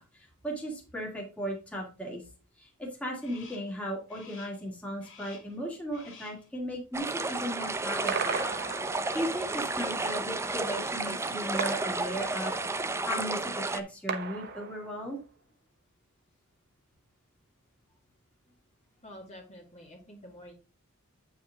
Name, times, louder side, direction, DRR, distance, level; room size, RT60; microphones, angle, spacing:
voice 1, 0.0-2.2 2.6-8.4 9.1-15.2, equal, 5° left, -2 dB, 2.1 m, -37 dB
Crow, 3.2-3.8 4.1-4.7 5.0-5.6 5.9-6.5 8.4-8.9 9.3-9.8 10.3-10.8 11.2-11.8 12.1-12.8, left 5 dB, 60° left, 2.5 m, -54 dB
sound 1, 6.9-13.8, right 2 dB, 10° right, 0.5 m, -32 dB
sound 2, 8.1-9.5 11.6-12.8 14.1-15.2, right 5 dB, 50° right, 1.1 m, -36 dB
voice 2, 19.0-20.5, equal, 30° left, 0 dB, 2.2 m, -49 dB
8.7 x 5.7 x 3.7 m, 0.34 s
head